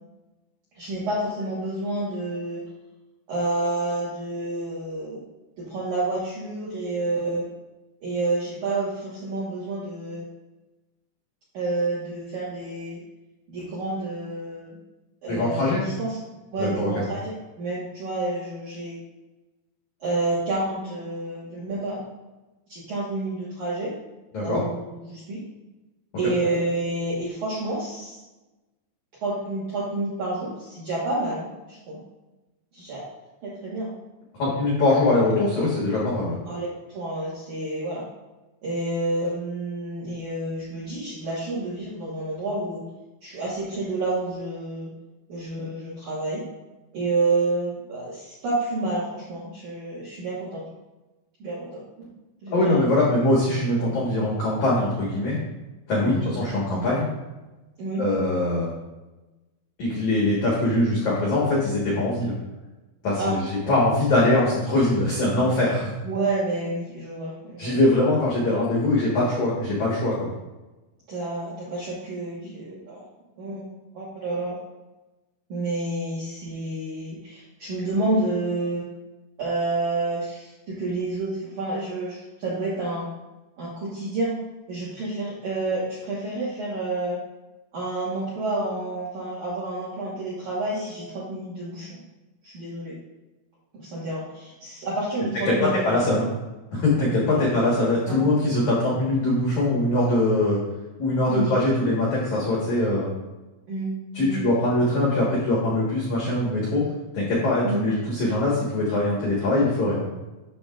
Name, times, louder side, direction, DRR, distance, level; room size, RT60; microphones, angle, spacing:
voice 1, 0.8-2.6 3.3-5.2 5.6-7.5 8.0-10.2 11.5-13.0 13.5-14.8 15.2-16.2 16.5-19.0 20.0-22.0 22.7-23.9 24.4-25.4 26.2-28.2 29.2-32.0 32.7-33.0 33.4-33.9 34.4-34.6 36.5-38.1 38.6-42.8 43.2-44.9 45.3-46.4 46.9-50.6 51.4-52.1 52.4-52.8 56.0-56.3 57.8-58.0 63.2-63.4 66.0-67.8 71.1-73.0 73.4-73.7 73.9-74.6 75.5-78.9 79.4-83.1 83.6-84.3 84.7-87.2 87.7-92.0 92.4-93.0 93.8-96.3 96.9-97.5 98.1-98.2 101.3-101.5 103.7-103.9 104.2-104.4 107.6-107.8, right 2 dB, 70° right, -8 dB, 1.8 m, -29 dB
voice 2, 15.3-15.8 16.6-17.0 24.3-24.6 26.2-26.3 34.4-36.4 52.5-55.4 55.9-57.1 58.0-58.7 59.8-62.3 63.0-65.9 67.6-70.3 95.5-96.2 96.7-100.6 101.0-103.1 104.1-106.8 107.1-110.0, left 2 dB, 75° left, -5 dB, 1.7 m, -22 dB
9.7 x 6.8 x 2.4 m, 1.1 s
omnidirectional pair, 5.9 m